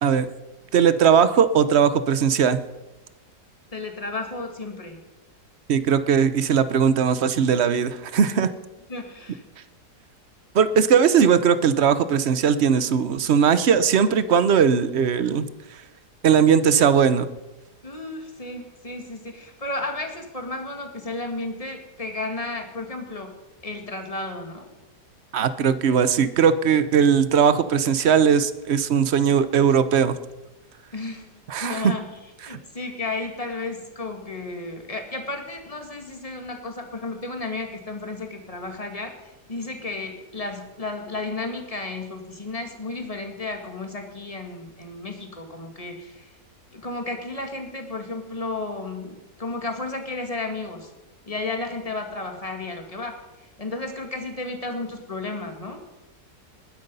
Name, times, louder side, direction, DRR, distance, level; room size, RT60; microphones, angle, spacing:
voice 1, 0.7-2.6 5.7-8.5 10.5-15.4 16.2-17.3 25.3-30.1 31.5-31.9 32.5-32.6, right 7 dB, 50° right, 13 dB, 0.8 m, -19 dB
voice 2, 3.7-5.0 8.9-9.4 17.8-23.3 23.6-24.7 30.9-32.1 32.5-39.2 39.5-46.3 46.7-50.9 51.3-53.2 53.6-55.8, left 2 dB, 20° left, 4 dB, 2.1 m, -33 dB
20.5 x 9.4 x 5.4 m, 1.1 s
omnidirectional pair, 1.8 m